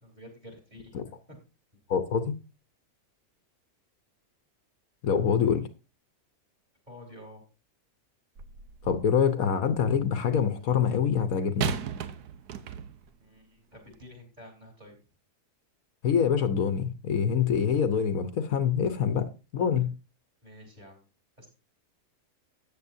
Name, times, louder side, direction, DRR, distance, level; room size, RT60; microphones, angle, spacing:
voice 1, 0.0-1.4 6.9-7.4 13.2-15.0 20.4-21.0 21.4-21.5, left 1 dB, 30° right, 3.7 m, -49 dB
voice 2, 1.9-2.4 5.0-5.6 8.8-11.7 16.0-19.3 19.5-19.9, left 7 dB, 65° left, 1.3 m, -25 dB
Single Chair hits floor bounce, 8.4-9.2 11.6-13.1 13.9-14.1, right 9 dB, 90° right, 1.4 m, -35 dB
13.5 x 8.9 x 2.7 m
omnidirectional pair, 1.6 m